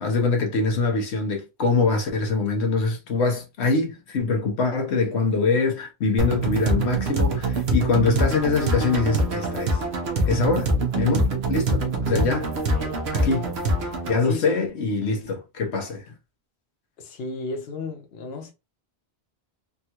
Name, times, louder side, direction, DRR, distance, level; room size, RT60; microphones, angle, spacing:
voice 1, 0.0-9.8 10.2-12.5 13.1-13.5 14.1-16.2, left 4 dB, 85° left, 1.1 m, -24 dB
sound 1, 6.2-14.2, right 1 dB, 75° right, 1.0 m, -24 dB
voice 2, 12.7-13.1 14.2-14.8 17.0-18.5, left 4 dB, 70° left, 0.9 m, -34 dB
3.6 x 2.3 x 2.8 m
omnidirectional pair, 1.1 m